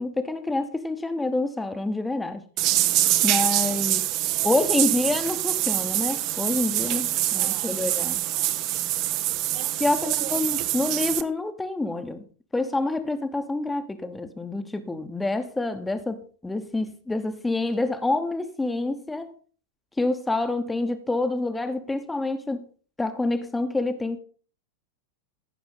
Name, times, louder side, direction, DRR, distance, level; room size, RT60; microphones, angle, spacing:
voice 1, 0.0-2.4 3.2-4.0 4.4-8.2 9.8-12.2 12.5-19.3 20.0-22.7 23.0-24.2, left 2 dB, 10° left, 0.9 m, -27 dB
sound 1, 2.6-11.2, right 14 dB, 40° right, 0.6 m, -25 dB
voice 2, 3.6-5.2 7.2-7.9 8.3-8.7 9.5-10.5, right 7 dB, 60° right, 1.7 m, -44 dB
15.0 x 6.0 x 3.9 m
figure-of-eight pair, 90°, 0 cm